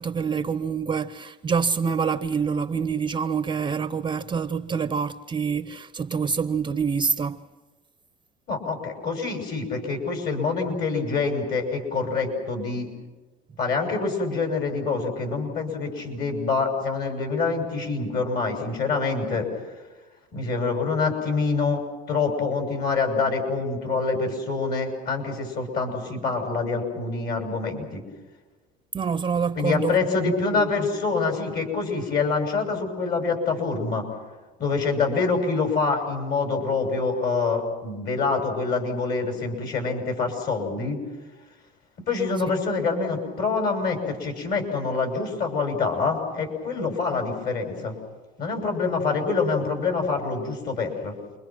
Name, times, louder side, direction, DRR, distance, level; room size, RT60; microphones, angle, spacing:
voice 1, 0.0-7.4 28.9-30.7, right 6 dB, 20° right, 0.7 m, -26 dB
voice 2, 8.5-12.9 13.6-19.5 20.3-21.8 22.1-28.0 29.5-34.1 34.6-41.0 42.1-47.9 48.4-51.1, left 4 dB, 50° left, 6.7 m, -26 dB
29.0 x 24.0 x 6.1 m
supercardioid pair, 115°, 21 cm